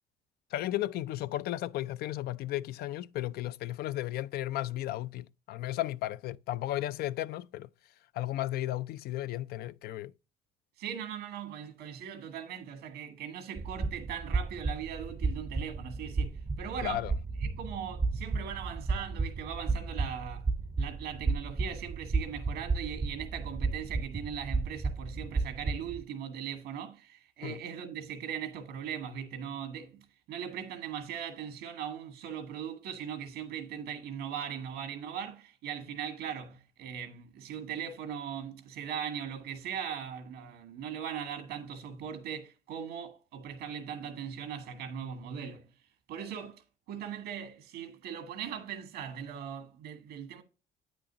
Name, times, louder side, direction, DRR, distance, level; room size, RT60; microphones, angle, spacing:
voice 1, 0.5-7.7 8.1-10.1 16.8-17.1 27.4-27.6, left 14 dB, 70° left, 0.4 m, -34 dB
voice 2, 10.8-17.0 17.4-20.5 20.8-45.7 46.1-46.6 46.9-50.4, right 8 dB, 90° right, 1.6 m, -39 dB
sound 1, 13.6-26.0, right 3 dB, 20° right, 0.5 m, -33 dB
8.8 x 6.3 x 2.8 m
cardioid pair, 110°, 17 cm